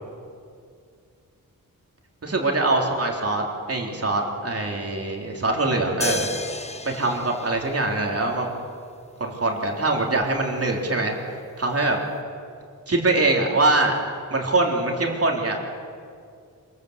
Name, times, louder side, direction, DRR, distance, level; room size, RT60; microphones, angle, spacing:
voice 1, 2.2-6.3 6.9-8.5 9.2-11.2 11.6-12.0 12.9-13.9 14.3-15.6, right 2 dB, 45° right, 0 dB, 3.7 m, -23 dB
sound 1, 6.0-8.5 10.2-10.3, left 2 dB, 20° left, 1.0 m, -32 dB
26.5 x 20.5 x 8.2 m, 2.3 s
wide cardioid pair, 145°, 34 cm